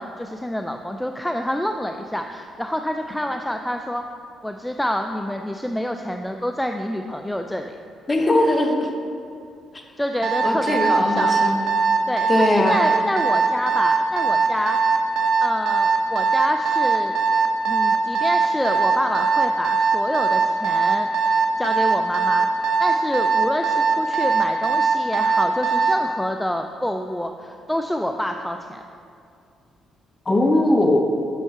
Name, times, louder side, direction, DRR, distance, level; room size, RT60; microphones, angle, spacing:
voice 1, 0.0-4.0 4.4-7.8 10.0-11.3 12.1-14.8 15.4-17.2 17.7-28.8, equal, 5° left, 5 dB, 0.3 m, -27 dB
voice 2, 8.1-8.9 10.4-11.6 12.3-12.8 30.3-31.0, left 1 dB, 25° left, 4 dB, 0.8 m, -19 dB
Alarm, 10.2-26.0, right 5 dB, 65° right, 0.7 m, -20 dB
8.3 x 5.4 x 3.6 m, 2.5 s
cardioid pair, 90°, 0 cm